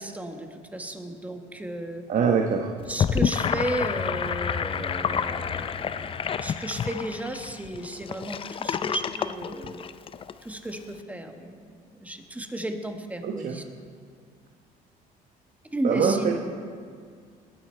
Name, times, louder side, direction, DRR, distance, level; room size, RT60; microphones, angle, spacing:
voice 1, 0.0-2.1 2.9-9.8 10.4-13.6 15.7-16.3, right 1 dB, 10° right, 5 dB, 1.2 m, -34 dB
voice 2, 2.1-2.7 13.2-13.6 15.8-16.3, right 6 dB, 50° right, 2 dB, 1.0 m, -23 dB
Gurgling / Sink (filling or washing), 2.8-10.3, left 7 dB, 30° left, 0.4 m, -29 dB
20.5 x 9.8 x 4.4 m, 2.1 s
cardioid pair, 110°, 17 cm